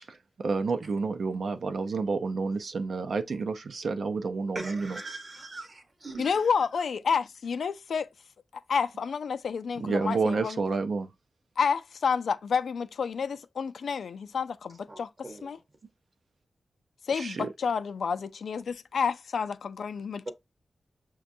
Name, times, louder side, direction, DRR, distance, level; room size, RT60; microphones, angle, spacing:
voice 1, 0.4-5.0 9.8-11.1 17.1-17.5, right 4 dB, 70° right, 0.5 m, -29 dB
voice 2, 4.5-6.3 14.9-15.5 20.3-20.4, right 2 dB, 40° right, 0.9 m, -40 dB
voice 3, 6.2-8.1 8.7-10.6 11.6-15.1 15.4-15.6 17.1-20.3, left 6 dB, 85° left, 0.4 m, -29 dB
6.0 x 2.2 x 2.6 m
wide cardioid pair, 115°, 0 cm